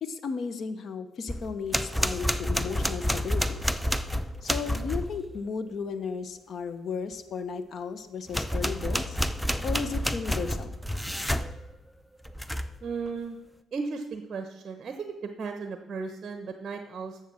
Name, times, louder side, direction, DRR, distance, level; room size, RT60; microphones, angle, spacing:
voice 1, 0.0-3.6 4.4-9.2 9.6-10.8, left 5 dB, 60° left, 11 dB, 1.0 m, -34 dB
sound 1, 1.3-5.2 8.3-11.5 12.3-12.8, equal, ahead, 0.6 m, -29 dB
voice 2, 12.8-13.4 13.7-14.9 15.4-17.3, right 4 dB, 45° right, 6 dB, 1.0 m, -35 dB
10.5 x 7.3 x 6.4 m, 0.98 s
cardioid pair, 90°, 0 cm